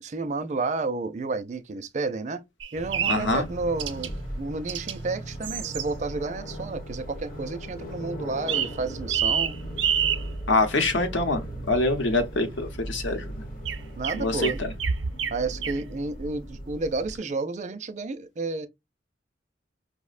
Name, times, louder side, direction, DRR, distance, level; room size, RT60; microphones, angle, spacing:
voice 1, 0.0-2.4 2.7-4.1 4.4-9.5 14.0-14.6 15.3-18.7, right 3 dB, 40° right, 0.4 m, -31 dB
sound 1, 2.6-3.3 3.8-4.1 4.7-4.9 5.4-5.9 8.5-8.8 9.1-10.2 13.6-15.3 15.6-15.8, right 8 dB, 80° right, 0.6 m, -27 dB
sound 2, 2.7-17.2, right 1 dB, 45° left, 0.9 m, -38 dB
voice 2, 3.1-3.5 10.5-13.3 14.1-14.7, left 2 dB, 80° left, 0.8 m, -25 dB
5.0 x 2.1 x 2.4 m
head